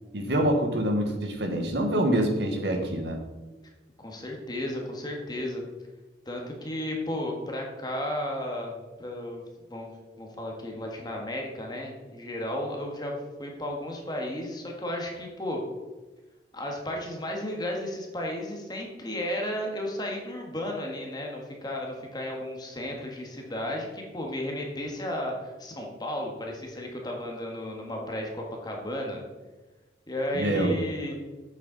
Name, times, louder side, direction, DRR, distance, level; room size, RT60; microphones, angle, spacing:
voice 1, 0.1-3.2 30.3-30.7, right 1 dB, 65° right, 4 dB, 1.2 m, -25 dB
voice 2, 4.0-5.6 6.2-9.4 9.7-9.9 10.2-15.6 16.5-29.2 30.1-31.2, left 1 dB, 25° left, 0 dB, 1.5 m, -34 dB
8.3 x 7.2 x 4.0 m, 1.2 s
head